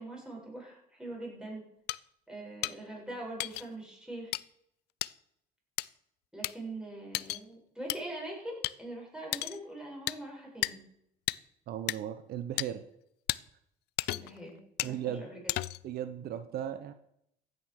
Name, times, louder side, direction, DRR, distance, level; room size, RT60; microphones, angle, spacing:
voice 1, 0.0-1.6 2.3-4.3 6.3-10.8 14.1-15.4, right 1 dB, 5° right, -3 dB, 7.4 m, -43 dB
sound 1, 1.9-2.0 2.6-2.7 3.4-3.6 4.3-4.4 5.0-5.1 5.8-5.9 6.4-6.5 7.1-7.4 7.9-8.0 8.6-8.7 9.3-9.6 10.1-10.2 10.6-10.7 11.3-11.4 11.9-12.0 12.6-12.7 13.3-13.4 14.0-14.4 14.8-14.9 15.5-15.9, left 18 dB, 80° left, 0.5 m, -33 dB
voice 2, 11.7-12.8 14.8-15.3 15.8-16.9, right 10 dB, 65° right, 10 dB, 1.0 m, -36 dB
15.0 x 9.7 x 6.6 m, 0.75 s
cardioid pair, 110°, 17 cm